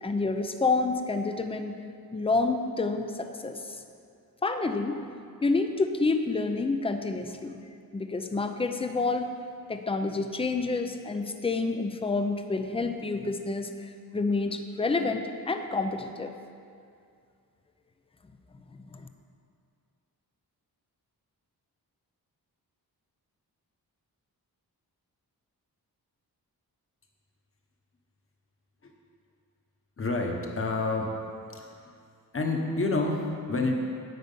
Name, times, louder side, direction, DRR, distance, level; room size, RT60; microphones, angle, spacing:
voice 1, 0.0-1.8 2.1-3.8 4.4-5.0 5.4-7.6 7.9-9.3 9.7-16.3 18.9-19.1, left 3 dB, 15° left, 7 dB, 0.5 m, -28 dB
voice 2, 30.0-31.1 31.5-31.9 32.3-33.8, left 2 dB, 35° left, 1 dB, 1.2 m, -29 dB
9.5 x 8.6 x 5.5 m, 2.3 s
wide cardioid pair, 175°, 38 cm